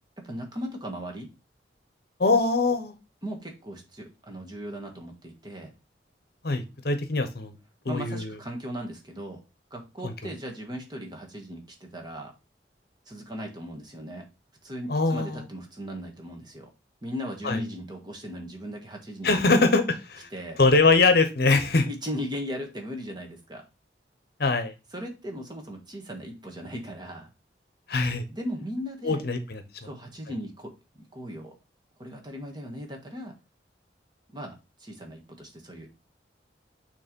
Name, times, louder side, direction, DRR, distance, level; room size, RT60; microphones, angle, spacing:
voice 1, 0.2-1.3 3.2-5.7 7.9-9.4 9.7-12.3 13.1-14.3 14.6-16.7 17.0-19.4 20.3-20.6 21.9-23.6 24.9-27.3 28.3-29.2 29.8-31.5 32.0-33.3 34.3-35.9, equal, 25° right, 2 dB, 1.5 m, -37 dB
voice 2, 2.2-2.9 6.4-7.5 7.8-8.3 10.0-10.1 14.9-15.4 17.4-17.6 19.2-20.3 20.6-21.9 24.4-24.7 27.9-28.2 29.0-29.6, left 3 dB, 60° left, 9 dB, 0.9 m, -22 dB
6.7 x 3.2 x 5.2 m, 0.27 s
head